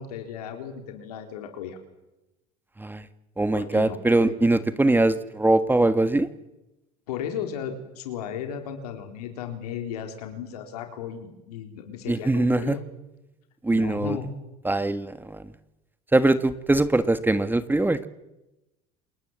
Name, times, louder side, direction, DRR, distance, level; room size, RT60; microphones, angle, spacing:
voice 1, 0.0-1.8 3.5-4.3 7.1-12.8 13.7-14.3, left 8 dB, 85° left, 6 dB, 4.0 m, -35 dB
voice 2, 3.4-6.3 12.1-12.8 13.6-14.2 14.6-15.4 16.1-18.1, right 2 dB, 10° right, 12 dB, 1.5 m, -22 dB
28.5 x 20.0 x 8.0 m, 0.99 s
supercardioid pair, 95°, 19 cm